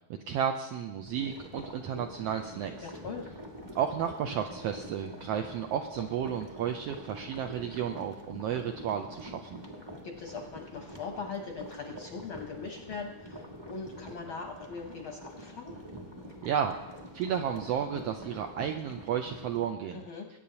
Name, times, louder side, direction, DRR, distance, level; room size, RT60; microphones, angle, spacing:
voice 1, 0.1-2.9 3.7-9.6 16.4-16.7 17.1-20.0, right 8 dB, 85° right, 4 dB, 1.4 m, -32 dB
sound 1, 1.0-19.7, equal, 20° right, 0.7 m, -46 dB
voice 2, 2.8-3.3 10.0-15.8 19.9-20.3, left 5 dB, 70° left, 2 dB, 1.2 m, -41 dB
21.0 x 8.9 x 2.8 m, 1.1 s
omnidirectional pair, 3.3 m